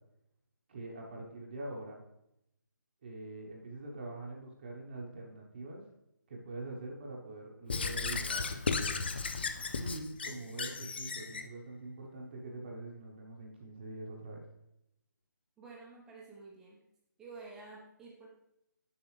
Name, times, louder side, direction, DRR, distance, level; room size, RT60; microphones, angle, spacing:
voice 1, 0.7-2.0 3.0-5.8 6.3-9.1 9.8-14.4, right 2 dB, 30° right, -2 dB, 1.0 m, -44 dB
Squeak / Writing, 7.7-11.5, left 4 dB, 30° left, 0.3 m, -35 dB
voice 2, 15.6-16.8 17.2-18.3, right 3 dB, 5° right, -3 dB, 0.8 m, -50 dB
7.2 x 6.5 x 3.3 m, 0.80 s
hypercardioid pair, 165°, 11 cm